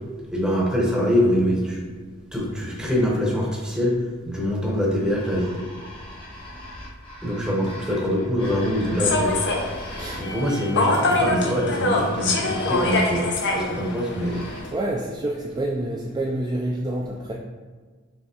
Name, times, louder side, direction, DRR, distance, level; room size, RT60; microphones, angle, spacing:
voice 1, 0.3-1.9 2.3-4.0 4.2-5.7 7.2-9.4 10.2-14.4, equal, 5° right, -3 dB, 0.8 m, -24 dB
sound 1, 5.0-10.8 11.9-14.6, left 1 dB, 25° left, 1.1 m, -40 dB
voice 2, 7.2-7.8 10.0-10.6 14.7-17.3, right 1 dB, 20° right, -2 dB, 0.3 m, -28 dB
Human voice / Subway metro underground, 9.0-14.7, left 2 dB, 60° left, 0.6 m, -24 dB
5.4 x 3.1 x 2.9 m, 1.4 s
head